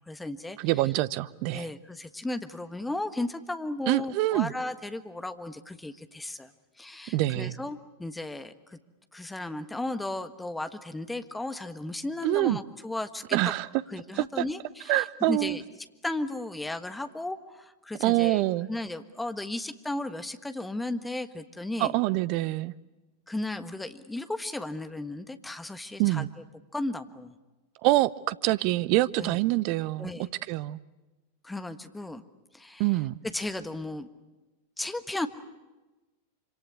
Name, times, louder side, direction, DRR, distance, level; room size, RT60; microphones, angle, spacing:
voice 1, 0.1-0.6 1.5-6.5 6.8-8.8 9.1-13.4 13.9-15.6 16.0-18.4 18.7-21.9 23.3-26.3 26.7-27.4 29.2-29.4 30.0-30.3 31.4-32.2 32.5-32.8 33.3-34.1 34.8-35.3, left 2 dB, 5° left, 1.4 m, -35 dB
voice 2, 0.6-1.7 3.9-4.5 7.1-7.5 12.2-12.6 13.3-13.7 14.2-14.3 14.9-15.6 18.0-18.7 21.8-22.7 26.0-26.3 27.8-30.1 30.5-30.8 32.8-33.2, right 18 dB, 45° right, 0.8 m, -25 dB
26.5 x 26.0 x 8.4 m
figure-of-eight pair, 90°, 0 cm